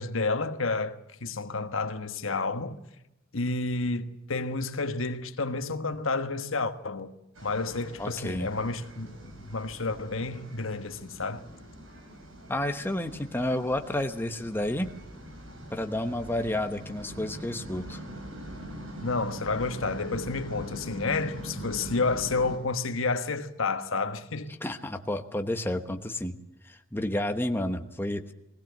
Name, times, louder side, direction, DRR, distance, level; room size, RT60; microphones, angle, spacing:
voice 1, 0.0-2.8 3.3-7.1 7.4-11.4 19.0-24.6, left 3 dB, 80° left, 1.4 m, -30 dB
sound 1, 7.3-22.6, right 1 dB, 90° right, 5.9 m, -43 dB
voice 2, 8.0-8.5 12.5-14.9 15.7-18.0 24.6-26.3 26.6-28.3, left 1 dB, 10° left, 1.1 m, -30 dB
21.0 x 16.5 x 7.9 m
head